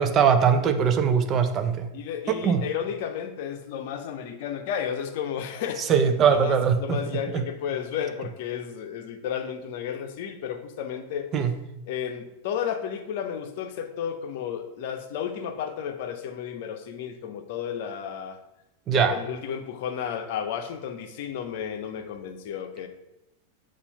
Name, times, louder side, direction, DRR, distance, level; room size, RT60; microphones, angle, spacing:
voice 1, 0.0-1.9 2.3-2.6 5.8-7.0 7.3-7.4 11.3-11.5 18.9-19.2, right 7 dB, 30° right, 8 dB, 0.6 m, -21 dB
voice 2, 1.9-5.8 6.3-11.3 11.9-18.4 18.9-22.9, left 8 dB, 50° left, 6 dB, 0.7 m, -32 dB
6.9 x 2.5 x 5.3 m, 0.90 s
figure-of-eight pair, 90°, 0 cm